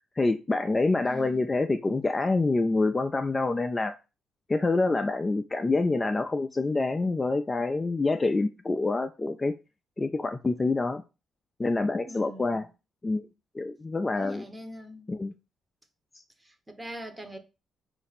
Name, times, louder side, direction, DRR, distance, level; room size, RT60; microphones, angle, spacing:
voice 1, 0.2-3.9 4.5-9.5 10.0-11.0 11.6-12.7 13.0-13.2 13.5-14.5 15.1-15.3, left 3 dB, 25° left, 0.3 m, -26 dB
voice 2, 1.0-1.5 12.0-12.7 14.1-15.1 16.4-17.4, equal, 15° right, 0.8 m, -43 dB
4.1 x 2.6 x 4.1 m
cardioid pair, 90°, 0 cm